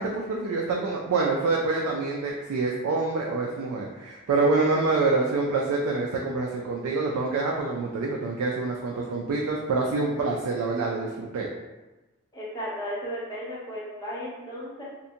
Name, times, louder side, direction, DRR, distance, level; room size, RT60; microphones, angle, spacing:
voice 1, 0.0-11.5, right 3 dB, 85° right, -1 dB, 0.3 m, -26 dB
voice 2, 12.3-14.8, equal, 15° left, -7 dB, 0.7 m, -35 dB
2.5 x 2.1 x 2.7 m, 1.1 s
head